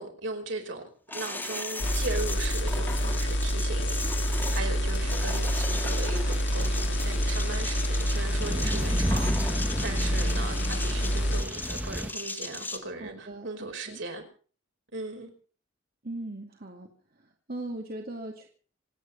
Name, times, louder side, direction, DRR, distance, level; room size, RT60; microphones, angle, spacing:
voice 1, 0.0-14.2 14.9-15.3, right 3 dB, 65° right, 5.0 m, -38 dB
sound 1, 1.1-12.8, left 2 dB, 10° left, 2.4 m, -37 dB
sound 2, 1.8-11.4, equal, 60° left, 2.5 m, -27 dB
sound 3, 5.0-12.1, equal, 5° right, 1.2 m, -36 dB
voice 2, 13.0-14.0 16.0-16.9 17.2-18.5, right 1 dB, 50° right, 2.4 m, -39 dB
27.5 x 9.7 x 5.4 m
head